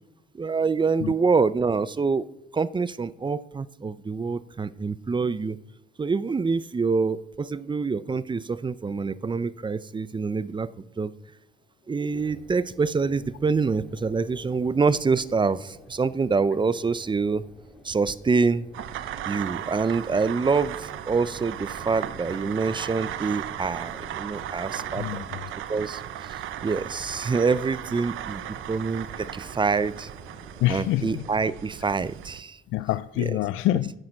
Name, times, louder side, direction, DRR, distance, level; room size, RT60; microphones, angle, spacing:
voice 1, 0.3-2.2 2.5-5.6 6.0-10.7 11.0-11.1 11.9-17.4 17.8-18.7 19.2-25.2 25.7-26.0 26.3-30.1 30.7-32.6 33.2-33.4, right 4 dB, 25° right, 0.5 m, -26 dB
sound 1, 12.1-31.5, equal, ahead, 2.7 m, -49 dB
sound 2, 18.7-32.4, right 12 dB, 80° right, 0.7 m, -36 dB
voice 2, 25.0-25.4 30.6-31.3 32.7-33.9, left 15 dB, 90° left, 0.4 m, -26 dB
10.5 x 9.7 x 6.4 m
cardioid pair, 90°, 20 cm